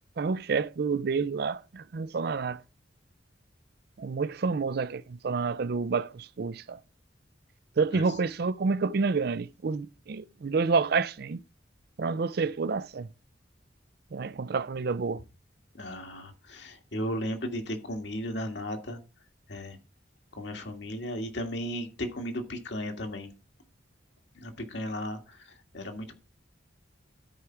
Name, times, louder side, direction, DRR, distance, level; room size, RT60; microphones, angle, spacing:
voice 1, 0.2-2.6 4.0-6.8 7.8-11.4 12.0-13.1 14.1-15.2, right 4 dB, 55° right, 0.4 m, -29 dB
voice 2, 15.7-19.0 19.5-19.8 20.3-23.3 24.4-26.1, equal, 70° left, 1.8 m, -35 dB
12.5 x 5.0 x 4.5 m
head